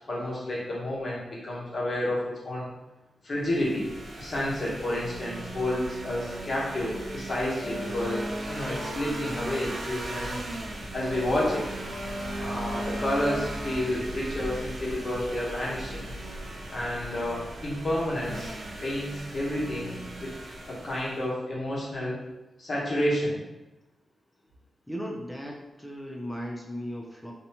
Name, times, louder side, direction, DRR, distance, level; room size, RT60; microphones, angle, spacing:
voice 1, 0.1-2.7 3.2-10.4 10.9-11.7 12.4-16.1 16.7-18.5 18.8-20.3 20.7-22.2 22.6-23.4, left 1 dB, 45° left, -6 dB, 1.0 m, -30 dB
sound 1, 3.4-21.3, right 1 dB, 55° right, 0.5 m, -37 dB
voice 2, 24.9-27.3, equal, 5° left, -2 dB, 0.4 m, -36 dB
2.7 x 2.2 x 2.8 m, 1.0 s
wide cardioid pair, 100°, 0 cm